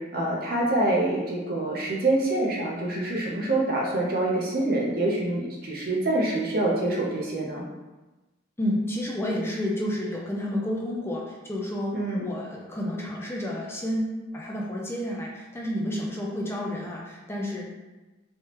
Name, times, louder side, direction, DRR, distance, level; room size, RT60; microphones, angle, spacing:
voice 1, 0.0-7.6 11.9-12.3, right 2 dB, 50° right, -3 dB, 0.8 m, -26 dB
voice 2, 8.6-17.7, left 1 dB, 15° left, -3 dB, 0.4 m, -30 dB
3.4 x 3.1 x 3.0 m, 1.1 s
head